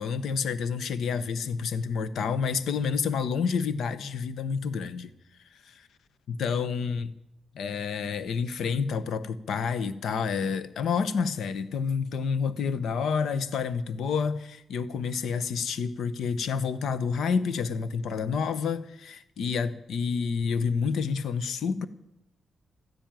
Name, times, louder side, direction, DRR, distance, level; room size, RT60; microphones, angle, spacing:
voice 1, 0.0-5.1 5.5-5.7 6.3-7.1 7.5-21.9, left 6 dB, 80° left, 0.9 m, -29 dB
14.0 x 10.5 x 9.0 m
cardioid pair, 80°, 0 cm